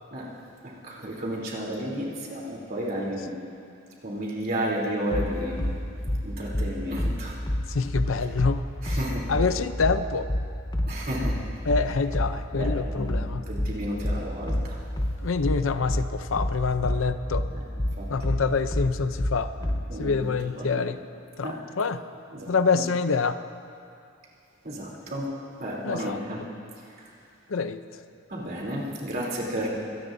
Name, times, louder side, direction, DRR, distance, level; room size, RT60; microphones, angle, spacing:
voice 1, 0.6-3.3 4.0-5.7 6.2-7.4 8.8-9.2 10.9-11.4 12.5-14.8 17.5-17.6 18.0-18.3 19.6-20.8 21.4-21.6 22.3-22.5 24.6-25.3 25.6-26.4 27.0-27.1 28.3-29.7, equal, 50° right, -4 dB, 3.3 m, -32 dB
sound 1, 5.1-19.9, left 1 dB, 20° left, 0.8 m, -28 dB
voice 2, 7.7-8.6 8.9-9.0 9.3-10.3 11.7-13.5 15.2-17.5 18.1-19.5 20.0-21.0 21.4-22.0 22.5-23.4 25.8-26.2 27.5-27.8, left 4 dB, 80° left, 11 dB, 0.6 m, -26 dB
23.5 x 18.0 x 2.7 m, 2.5 s
head